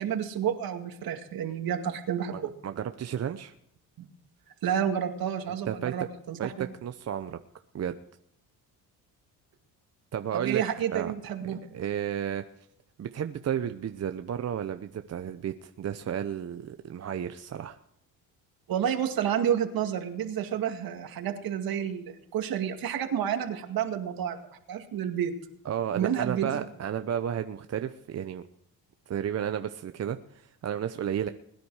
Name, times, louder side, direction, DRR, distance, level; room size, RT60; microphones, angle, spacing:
voice 1, 0.0-2.5 4.0-4.1 4.6-6.7 10.3-11.6 18.7-24.4 24.7-25.3 26.0-26.5, right 9 dB, 60° right, 6 dB, 2.2 m, -30 dB
voice 2, 2.3-3.5 5.7-5.9 6.4-7.4 7.7-7.9 10.1-10.6 10.9-11.1 11.4-12.4 13.0-17.8 25.6-28.4 29.1-31.3, right 9 dB, 40° right, 9 dB, 0.8 m, -32 dB
21.0 x 10.5 x 4.9 m, 0.75 s
cardioid pair, 100°, 39 cm